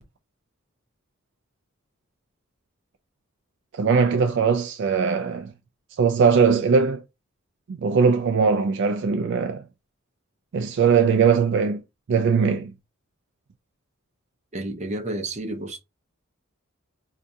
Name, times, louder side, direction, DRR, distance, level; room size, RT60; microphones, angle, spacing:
voice 1, 3.7-5.5 5.9-7.0 7.7-9.6 10.5-11.8 12.1-12.7, right 5 dB, 55° right, 0.3 m, -20 dB
voice 2, 14.5-15.8, right 1 dB, 35° right, 0.8 m, -30 dB
4.5 x 2.4 x 2.6 m
head